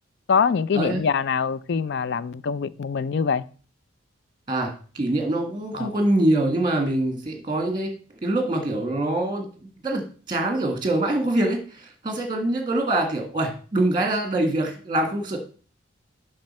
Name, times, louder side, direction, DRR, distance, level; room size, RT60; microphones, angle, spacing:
voice 1, 0.3-3.4 5.8-5.9, left 6 dB, 55° left, 0.4 m, -24 dB
voice 2, 4.5-7.9 8.2-15.4, right 1 dB, 20° right, 1.7 m, -24 dB
7.6 x 5.5 x 4.3 m
head